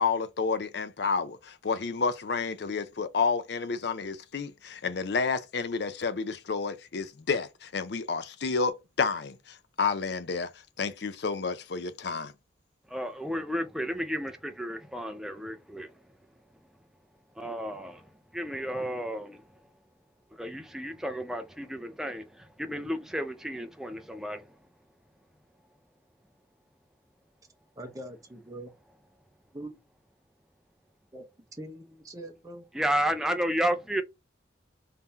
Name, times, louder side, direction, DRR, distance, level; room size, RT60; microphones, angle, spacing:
voice 1, 0.0-10.5 10.8-12.3, left 5 dB, 60° left, 0.5 m, -30 dB
voice 2, 12.9-15.9 17.4-19.4 20.3-24.5 32.7-34.0, equal, 5° right, 0.4 m, -32 dB
voice 3, 27.8-28.7 29.5-29.8 31.1-31.2 31.5-32.6, right 1 dB, 20° right, 0.8 m, -42 dB
3.6 x 2.8 x 3.4 m
head